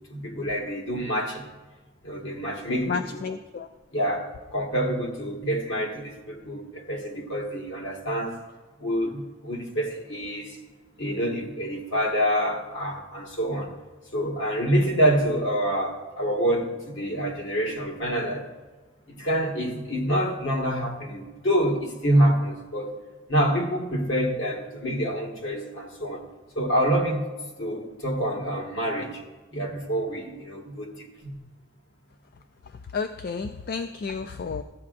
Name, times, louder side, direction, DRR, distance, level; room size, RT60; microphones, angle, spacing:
voice 1, 0.1-1.5 2.0-3.2 3.9-8.3 8.8-10.6 11.0-13.7 14.1-18.5 19.1-23.0 23.3-26.2 26.5-27.3 27.6-29.2 29.5-31.1 31.3-31.4, equal, 65° left, 0 dB, 1.6 m, -27 dB
voice 2, 2.9-3.7 32.9-34.6, left 5 dB, 45° left, 7 dB, 0.3 m, -31 dB
14.5 x 8.4 x 2.6 m, 1.2 s
head